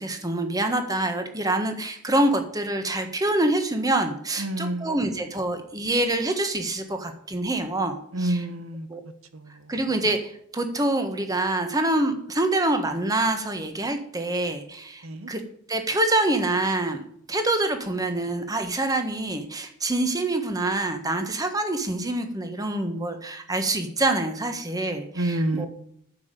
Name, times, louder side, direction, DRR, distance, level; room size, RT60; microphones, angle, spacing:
voice 1, 0.0-8.0 8.2-8.4 8.9-9.0 9.7-15.4 15.7-25.7, right 2 dB, 15° right, 6 dB, 1.4 m, -26 dB
voice 2, 4.4-5.2 8.1-8.9 9.3-9.7 15.0-15.3 25.1-25.7, right 1 dB, 75° right, 10 dB, 1.3 m, -29 dB
9.5 x 7.3 x 8.3 m, 0.69 s
head